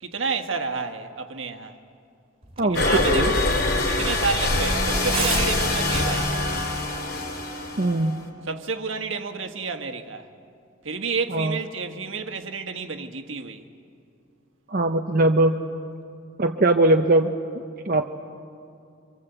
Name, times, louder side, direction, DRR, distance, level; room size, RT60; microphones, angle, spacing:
voice 1, 0.0-1.7 2.6-3.4 3.9-6.3 8.5-10.3 10.8-13.6, right 4 dB, 65° right, 1.6 m, -30 dB
sound 1, 2.4-7.4, right 5 dB, 25° right, 2.4 m, -37 dB
voice 2, 2.6-3.3 7.8-8.1 11.3-11.6 14.7-15.6 16.4-17.3 17.9-18.1, right 2 dB, 45° right, 0.8 m, -20 dB
sound 2, 2.7-8.3, left 2 dB, 50° left, 3.9 m, -24 dB
sound 3, 3.5-3.7 5.7-6.7, equal, 70° left, 2.7 m, -34 dB
26.5 x 25.5 x 8.1 m
head